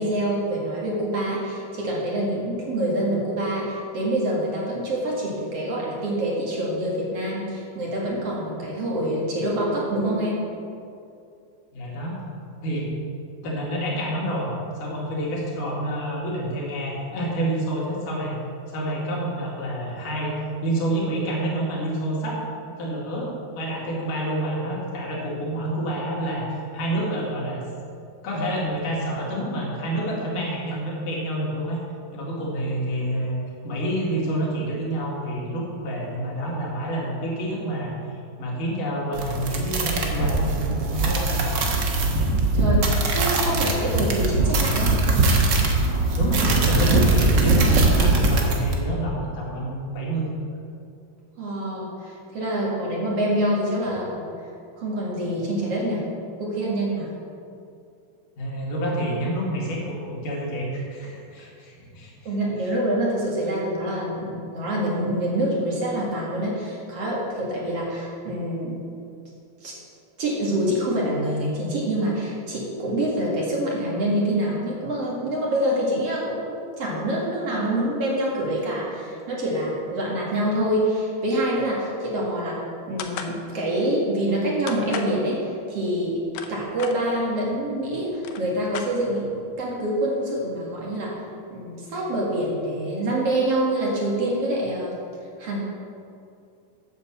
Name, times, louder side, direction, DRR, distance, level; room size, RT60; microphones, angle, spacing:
voice 1, 0.0-10.4 42.5-45.0 51.4-54.3 54.8-56.1 56.4-57.1 62.2-68.8 69.6-69.7 70.2-76.5 76.8-82.6 82.9-86.2 86.5-91.1 91.5-95.0 95.4-95.6, right 1 dB, 50° right, -4 dB, 2.8 m, -26 dB
voice 2, 11.7-12.1 12.6-12.9 13.4-18.4 18.7-27.6 28.2-31.8 32.1-37.9 38.4-41.5 46.2-50.3 53.8-53.9 58.4-62.1, right 1 dB, 70° left, -4 dB, 3.8 m, -28 dB
sound 1, 39.1-48.7, right 2 dB, 90° right, 0.9 m, -21 dB
sound 2, 83.0-83.4 84.7-85.2 86.1-87.0 87.8-87.9 88.1-89.3, left 7 dB, 85° left, 1.3 m, -35 dB
9.5 x 7.5 x 7.3 m, 2.5 s
omnidirectional pair, 3.9 m